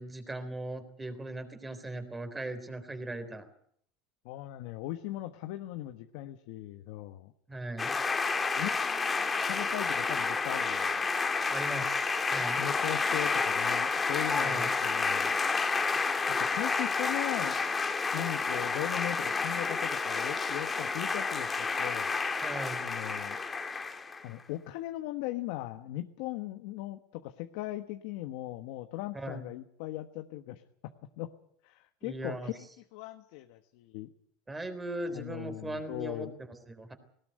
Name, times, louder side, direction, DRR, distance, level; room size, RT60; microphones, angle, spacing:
voice 1, 0.0-3.5 7.5-8.0 11.5-12.6 14.4-14.7 22.4-22.8 29.1-29.5 32.0-32.5 34.5-36.9, right 1 dB, 10° right, 10 dB, 3.7 m, -39 dB
voice 2, 4.2-7.3 8.5-11.0 12.6-15.3 16.3-17.6 18.1-22.1 22.8-23.4 24.2-30.6 31.2-31.3 31.6-34.1 35.1-36.3, left 15 dB, 70° left, 8 dB, 1.2 m, -39 dB
sound 1, 7.8-24.2, left 4 dB, 20° left, 2.0 m, -30 dB
19.0 x 18.0 x 8.9 m, 0.68 s
supercardioid pair, 125°, 0 cm